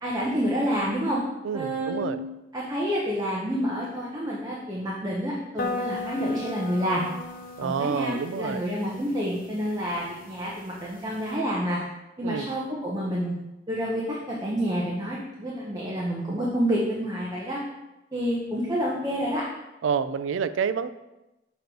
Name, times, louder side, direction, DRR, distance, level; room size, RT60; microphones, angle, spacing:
voice 1, 0.0-1.2 1.5-2.1 2.5-7.0 7.6-11.8 12.2-13.4 13.7-17.6 18.1-19.4, equal, 20° right, -4 dB, 0.8 m, -28 dB
voice 2, 1.4-2.2 7.6-8.6 12.2-12.5 19.8-20.9, right 6 dB, 90° right, 13 dB, 0.3 m, -28 dB
sound 1, 5.6-11.3, left 2 dB, 50° left, 0.6 m, -37 dB
6.6 x 3.0 x 5.1 m, 0.97 s
head